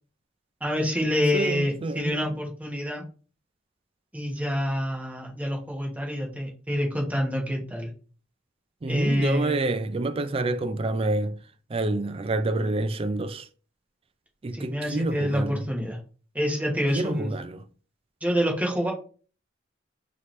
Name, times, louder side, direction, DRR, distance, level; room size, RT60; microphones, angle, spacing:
voice 1, 0.6-3.0 4.1-7.9 8.9-9.7 14.5-16.0 16.3-17.3 18.2-18.9, equal, 10° right, 1.2 m, -27 dB
voice 2, 1.3-2.2 8.8-11.4 11.7-13.5 14.4-15.6 16.9-17.6, right 2 dB, 30° right, 0.4 m, -28 dB
4.8 x 2.9 x 3.2 m
head